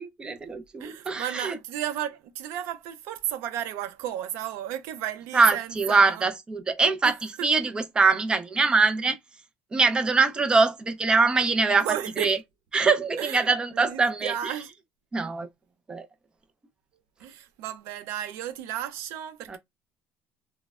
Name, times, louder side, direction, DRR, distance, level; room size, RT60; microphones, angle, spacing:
voice 1, 0.2-1.6 5.3-9.2 9.7-12.4 12.7-14.5 15.1-15.5 15.9-16.1 19.5-19.6, right 4 dB, 20° right, 0.5 m, -23 dB
voice 2, 0.8-6.2 7.4-7.5 11.8-12.3 13.2-13.5 13.7-14.7 17.2-19.6, right 11 dB, 80° right, 0.5 m, -33 dB
3.1 x 2.1 x 2.3 m
cardioid pair, 125°, 5 cm